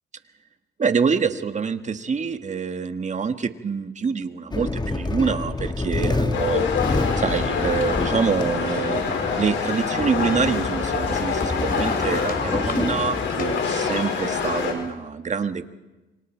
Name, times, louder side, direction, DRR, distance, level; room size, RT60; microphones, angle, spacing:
voice 1, 0.8-6.6 7.2-15.7, right 5 dB, 35° right, 8 dB, 1.6 m, -26 dB
sound 1, 4.5-13.5, left 2 dB, 20° left, 1.9 m, -28 dB
sound 2, 6.3-14.7, left 5 dB, 70° left, 5.2 m, -26 dB
sound 3, 7.8-14.9, left 5 dB, 45° left, 3.2 m, -40 dB
28.0 x 24.5 x 4.6 m, 1.1 s
cardioid pair, 90°, 20 cm